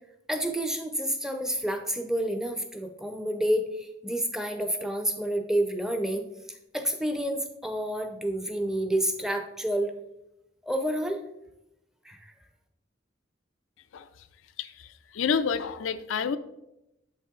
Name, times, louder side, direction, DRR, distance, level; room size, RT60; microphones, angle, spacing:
voice 1, 0.3-6.3 6.7-9.9 10.6-11.2 12.1-12.3, right 1 dB, 5° right, 6 dB, 0.5 m, -29 dB
voice 2, 14.6-14.9 15.1-16.4, left 6 dB, 85° left, 11 dB, 0.4 m, -28 dB
7.1 x 5.6 x 3.7 m, 0.87 s
head